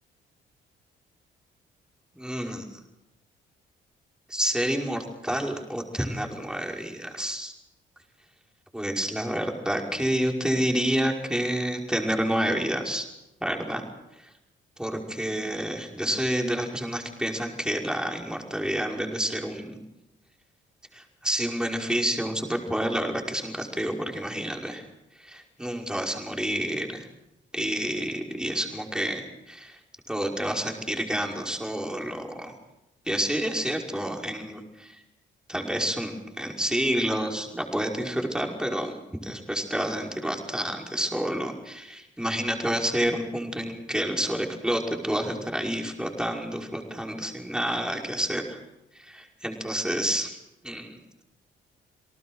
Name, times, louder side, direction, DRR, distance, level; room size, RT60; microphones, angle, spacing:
voice 1, 2.1-2.7 4.3-7.5 8.7-13.1 13.4-13.8 14.2-14.3 14.8-19.8 20.9-24.8 25.2-27.1 27.5-29.8 30.1-32.5 33.1-35.0 35.5-48.6 49.0-50.4 50.6-51.0, equal, 5° right, 1 dB, 5.4 m, -29 dB
29.5 x 18.5 x 6.4 m, 0.90 s
cardioid pair, 90°, 20 cm